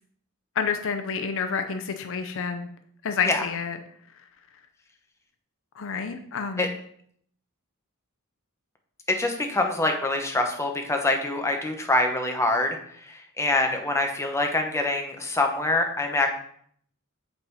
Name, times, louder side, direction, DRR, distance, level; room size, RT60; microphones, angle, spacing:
voice 1, 0.6-2.7 3.0-3.8 5.8-6.7, left 6 dB, 60° left, 7 dB, 0.6 m, -29 dB
voice 2, 9.1-16.3, left 2 dB, 15° left, 3 dB, 1.0 m, -25 dB
8.3 x 4.0 x 4.7 m, 0.63 s
head